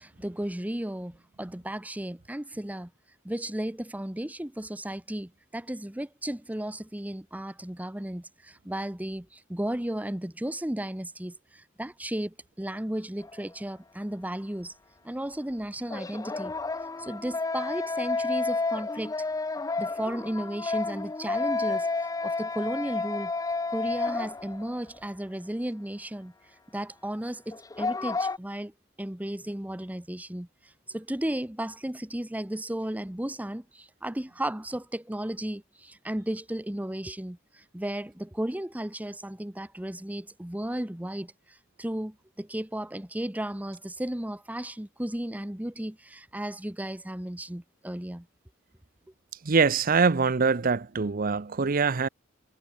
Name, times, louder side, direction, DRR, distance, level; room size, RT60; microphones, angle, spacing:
voice 1, 0.0-2.9 3.2-14.7 15.0-16.5 17.0-19.2 19.8-23.3 23.7-26.3 26.7-28.7 29.0-30.5 30.9-48.3, right 1 dB, 10° right, 0.9 m, -34 dB
sound 1, 13.2-13.4 15.9-24.8 25.1-25.2 27.5-28.4, left 3 dB, 20° left, 0.5 m, -31 dB
voice 2, 49.4-52.1, right 5 dB, 45° right, 0.7 m, -23 dB
head